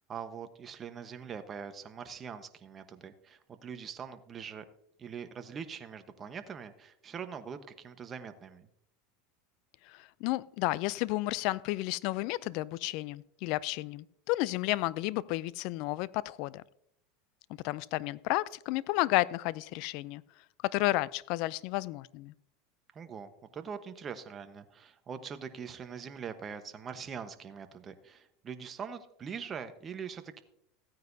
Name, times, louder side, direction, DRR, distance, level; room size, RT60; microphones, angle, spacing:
voice 1, 0.1-4.6 5.0-8.7 22.9-30.4, right 6 dB, 30° right, 1.1 m, -43 dB
voice 2, 9.8-16.6 17.6-20.2 20.6-22.3, left 19 dB, 60° left, 0.4 m, -32 dB
15.5 x 9.3 x 2.7 m
supercardioid pair, 110°, 0 cm